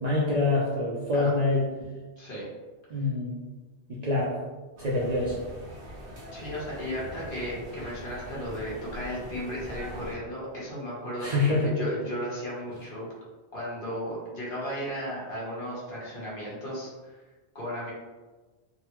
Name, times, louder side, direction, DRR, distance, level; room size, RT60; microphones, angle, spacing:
voice 1, 0.0-1.6 2.9-3.4 3.9-4.3 4.8-5.4 11.2-11.8, left 2 dB, 50° right, -6 dB, 0.5 m, -25 dB
voice 2, 2.2-2.5 6.3-13.1 13.5-17.2 17.5-17.9, equal, 50° left, -7 dB, 1.2 m, -35 dB
sound 1, 4.8-10.1, equal, 80° right, 1.1 m, -42 dB
3.7 x 2.0 x 2.9 m, 1.3 s
omnidirectional pair, 1.1 m